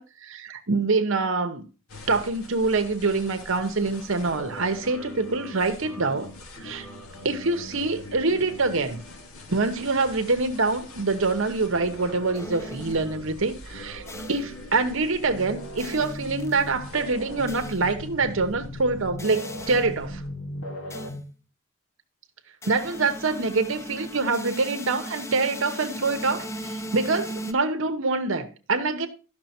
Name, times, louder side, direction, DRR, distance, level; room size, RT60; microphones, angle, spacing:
voice 1, 0.0-1.7 2.1-6.3 6.6-6.9 7.2-9.0 9.5-20.2 22.7-29.1, right 3 dB, 60° right, 1.0 m, -25 dB
sound 1, 1.9-21.2, left 1 dB, 80° left, 1.8 m, -40 dB
sound 2, 12.3-13.2 14.1-14.6 15.8-16.6 17.5-17.9 19.2-19.9 20.9-21.2 22.6-27.5, equal, 15° left, 0.5 m, -38 dB
11.5 x 6.1 x 4.3 m
head